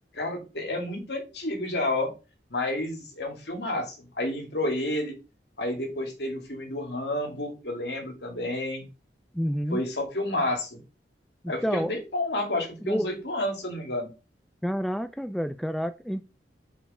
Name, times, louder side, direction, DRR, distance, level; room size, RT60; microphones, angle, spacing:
voice 1, 0.1-2.1 2.5-5.1 5.6-8.9 9.7-10.8 11.5-14.1, left 1 dB, 65° left, 2.3 m, -30 dB
voice 2, 9.3-9.8 11.4-11.9 12.8-13.1 14.6-16.3, equal, ahead, 0.3 m, -28 dB
5.4 x 5.0 x 4.9 m
head